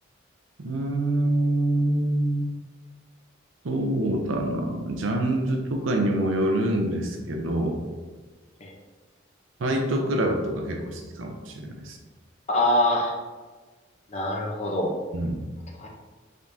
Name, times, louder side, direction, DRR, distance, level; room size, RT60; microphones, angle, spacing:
voice 1, 0.6-2.5 3.6-7.8 9.6-12.0 15.1-15.4, right 1 dB, 75° right, 3 dB, 0.6 m, -25 dB
voice 2, 12.5-13.2 14.1-14.9 15.8-15.9, left 1 dB, 35° left, -2 dB, 0.7 m, -24 dB
5.1 x 3.6 x 2.7 m, 1.3 s
head